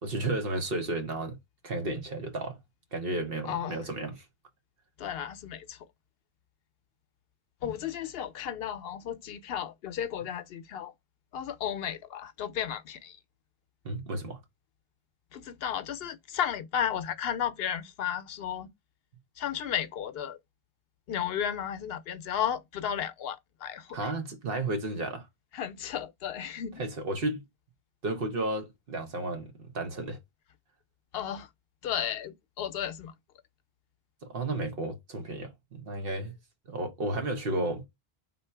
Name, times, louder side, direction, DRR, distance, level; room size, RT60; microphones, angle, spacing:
voice 1, 0.0-1.4 1.6-2.6 2.9-4.2 13.8-14.4 23.9-25.3 26.8-27.4 28.0-30.2 34.2-36.3 36.7-37.9, right 2 dB, 60° right, 1.1 m, -33 dB
voice 2, 3.4-3.9 5.0-5.9 7.6-10.9 11.3-13.2 15.3-18.7 19.4-20.4 21.1-24.0 25.5-26.8 31.1-31.5 31.8-33.1, left 9 dB, 70° left, 0.8 m, -34 dB
3.7 x 2.7 x 4.5 m
omnidirectional pair, 1.1 m